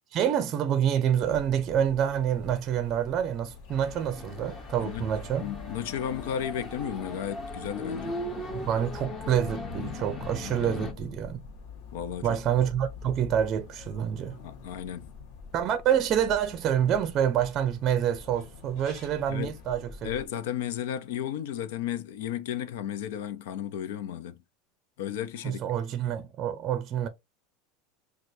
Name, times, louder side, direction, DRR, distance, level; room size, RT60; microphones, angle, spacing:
voice 1, 0.1-5.4 8.7-11.4 12.2-14.3 15.5-20.1 25.4-27.1, right 9 dB, 35° right, 0.5 m, -27 dB
sound 1, 1.1-20.3, left 5 dB, 50° left, 1.3 m, -47 dB
sound 2, 3.7-10.9, left 2 dB, 20° left, 0.9 m, -38 dB
voice 2, 5.4-8.2 10.6-10.9 11.9-12.4 14.4-15.1 19.3-19.6 20.0-24.4 25.0-25.6, left 10 dB, 80° left, 0.6 m, -34 dB
6.1 x 2.4 x 2.6 m
supercardioid pair, 155°, 0 cm